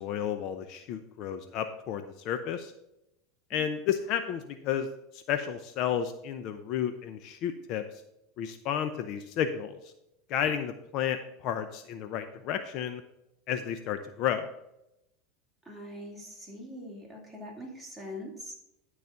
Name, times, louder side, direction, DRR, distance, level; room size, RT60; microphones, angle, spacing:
voice 1, 0.0-2.7 3.5-4.9 5.1-8.0 8.4-9.9 10.3-13.0 13.5-14.5, left 9 dB, 55° left, 8 dB, 0.7 m, -32 dB
voice 2, 15.7-18.5, left 1 dB, ahead, -3 dB, 2.8 m, -43 dB
12.0 x 4.1 x 5.8 m, 0.85 s
supercardioid pair, 115°, 0 cm